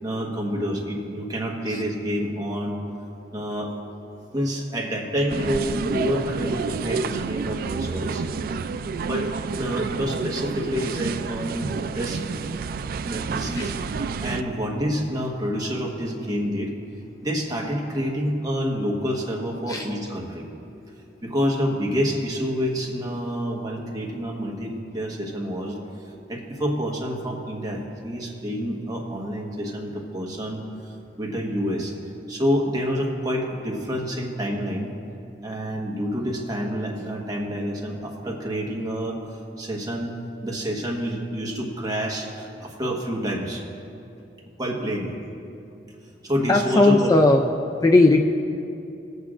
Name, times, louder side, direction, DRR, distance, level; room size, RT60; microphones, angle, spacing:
voice 1, 0.0-2.7 3.3-3.7 4.3-8.2 9.1-12.2 13.0-13.7 14.2-16.7 17.2-20.4 21.2-25.8 26.3-30.6 31.2-31.9 32.3-34.9 35.4-39.2 39.6-43.6 44.6-45.1 46.2-47.1, equal, 20° right, -1 dB, 1.3 m, -28 dB
sound 1, 5.3-14.4, right 5 dB, 55° right, 0.3 m, -29 dB
voice 2, 46.5-47.4 47.8-48.3, left 2 dB, 20° left, 3 dB, 0.3 m, -16 dB
19.5 x 8.0 x 2.5 m, 2.7 s
head